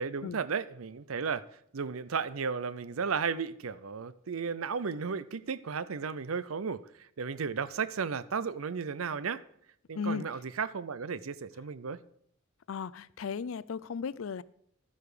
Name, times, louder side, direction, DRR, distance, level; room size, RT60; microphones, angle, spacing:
voice 1, 0.0-1.4 1.7-9.4 9.9-12.0, right 5 dB, 85° right, 0.6 m, -34 dB
voice 2, 12.7-14.4, left 5 dB, 70° left, 0.4 m, -35 dB
12.5 x 9.4 x 5.0 m
head